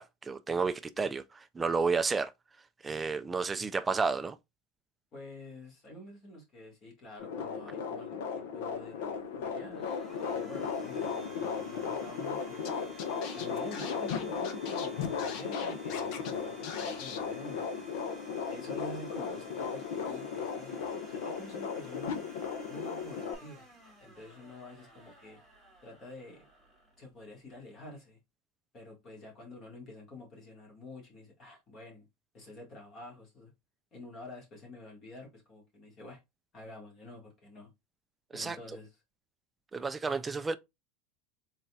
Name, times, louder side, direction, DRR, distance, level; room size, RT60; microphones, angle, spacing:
voice 1, 0.0-2.3 2.8-4.4 38.3-38.6 39.7-40.6, right 4 dB, 10° right, 0.3 m, -31 dB
voice 2, 5.1-9.8 10.3-12.9 13.3-17.9 18.5-22.2 22.7-23.7 24.0-25.4 25.8-26.5 27.0-28.2 28.7-32.1 32.3-33.5 33.9-36.2 36.5-37.7 38.3-39.0, left 1 dB, 25° left, 1.6 m, -48 dB
sound 1, 7.2-23.3, left 6 dB, 80° left, 1.0 m, -36 dB
Domestic sounds home sounds, 8.7-27.6, right 2 dB, 5° left, 2.1 m, -54 dB
Scratching (performance technique), 12.6-12.7 13.0-16.3 16.6-17.2, left 7 dB, 45° left, 0.8 m, -42 dB
4.0 x 3.9 x 2.3 m
supercardioid pair, 165°, 0 cm